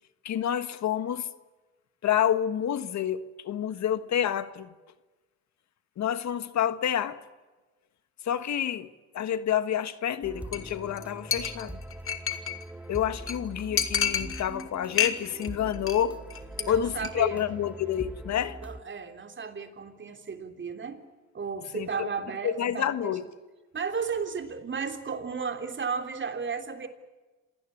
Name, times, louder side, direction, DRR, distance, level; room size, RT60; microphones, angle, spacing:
voice 1, 0.2-1.3 2.0-4.7 6.0-7.2 8.2-11.8 12.9-16.2 16.7-18.6 21.7-22.1 22.4-23.2, left 10 dB, 65° left, 1.5 m, -28 dB
sound 1, 10.2-18.8, right 1 dB, 5° right, 1.6 m, -42 dB
Chink clink, 10.5-10.7 11.0-11.1 11.3-12.6 13.0-13.1 13.3-13.4 13.8-14.6 14.9-15.5 15.7-16.0 16.3-16.6 17.0-17.1, left 7 dB, 45° left, 2.6 m, -28 dB
voice 2, 16.6-17.4 18.6-21.0 21.3-23.2 23.7-26.9, right 5 dB, 40° right, 3.5 m, -34 dB
27.0 x 18.0 x 8.6 m
cardioid pair, 90°, 30 cm